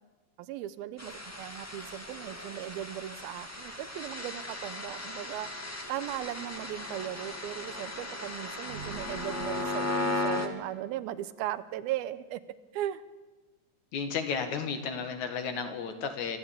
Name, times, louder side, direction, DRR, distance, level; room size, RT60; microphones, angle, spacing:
voice 1, 0.4-5.5 5.9-12.4 12.7-13.0, right 13 dB, 85° right, 14 dB, 2.7 m, -37 dB
sound 1, 1.0-10.5, left 2 dB, 15° left, 0.4 m, -36 dB
sound 2, 8.6-11.2, right 7 dB, 65° right, 2.4 m, -48 dB
voice 2, 13.9-16.4, left 6 dB, 55° left, 7 dB, 2.8 m, -33 dB
27.0 x 13.5 x 8.8 m, 1.2 s
omnidirectional pair, 4.3 m